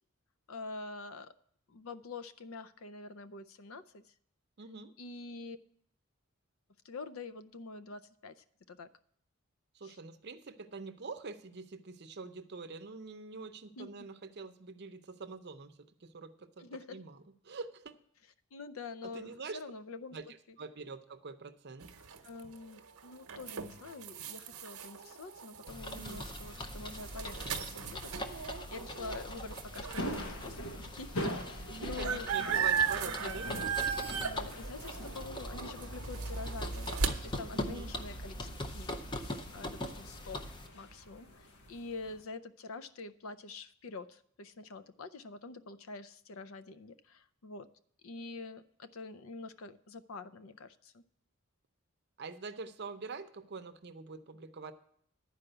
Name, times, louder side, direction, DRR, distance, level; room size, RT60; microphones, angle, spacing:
voice 1, 0.5-1.3 1.7-4.1 5.0-5.6 6.8-8.9 9.8-10.0 13.8-14.1 16.6-17.0 18.5-20.2 20.5-20.6 22.2-33.4 34.2-38.9 39.5-40.5 40.7-47.7 48.0-51.1, left 3 dB, 70° left, 13 dB, 0.5 m, -46 dB
voice 2, 4.6-4.9 9.7-15.7 16.0-17.2 17.4-17.9 19.0-19.6 20.1-20.2 20.6-21.9 25.9-26.3 31.7-34.1 37.5-37.9 52.2-54.7, right 4 dB, 50° right, 8 dB, 0.6 m, -45 dB
sound 1, 21.8-30.3 30.8-30.9 31.1-37.1, right 7 dB, 85° right, 0.8 m, -37 dB
sound 2, 25.7-40.7, left 1 dB, 20° left, 0.5 m, -42 dB
sound 3, 29.9-42.2, equal, 90° left, 1.2 m, -44 dB
11.0 x 4.8 x 7.8 m, 0.66 s
head